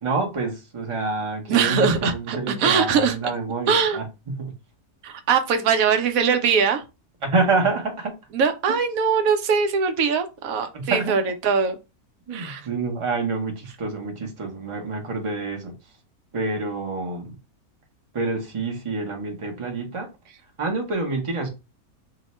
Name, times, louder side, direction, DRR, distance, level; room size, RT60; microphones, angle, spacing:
voice 1, 0.0-4.0 4.4-4.5 7.2-8.1 10.7-11.2 12.3-15.7 16.3-17.3 18.1-20.1 20.6-21.5, right 3 dB, 35° right, 0.5 m, -27 dB
voice 2, 1.5-3.2 3.7-4.0 5.0-6.8 8.3-11.8 12.3-12.6, right 6 dB, 70° right, 1.0 m, -21 dB
2.8 x 2.1 x 4.1 m
omnidirectional pair, 1.6 m